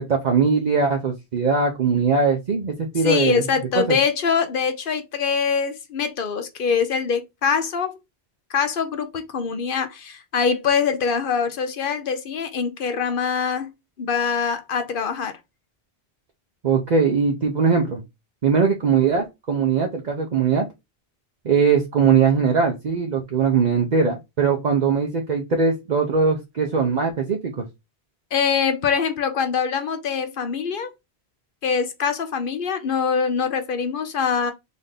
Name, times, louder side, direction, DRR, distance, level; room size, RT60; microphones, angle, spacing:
voice 1, 0.0-3.4 3.7-4.0 16.6-18.0 18.4-20.7 21.4-27.7, right 5 dB, 50° right, 0.7 m, -20 dB
voice 2, 3.0-7.9 8.5-15.4 28.3-30.9 31.6-34.5, left 6 dB, 60° left, 0.8 m, -24 dB
4.0 x 2.6 x 3.4 m
omnidirectional pair, 1.1 m